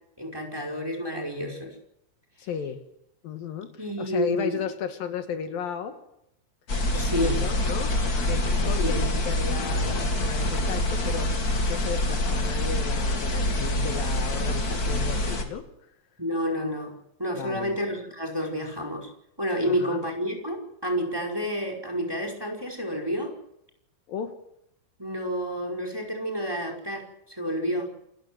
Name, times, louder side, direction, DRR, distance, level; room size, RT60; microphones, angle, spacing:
voice 1, 0.2-1.8 3.8-4.6 6.9-7.4 8.8-9.0 16.2-19.1 19.4-23.3 25.0-27.9, equal, 5° right, 3 dB, 4.9 m, -30 dB
voice 2, 2.4-2.8 3.2-6.0 6.9-15.6 17.4-17.8 19.6-20.0 24.1-24.3, left 7 dB, 70° left, 8 dB, 3.3 m, -34 dB
sound 1, 6.7-15.4, left 1 dB, 30° left, 2.4 m, -26 dB
28.5 x 15.5 x 7.9 m, 0.80 s
omnidirectional pair, 4.3 m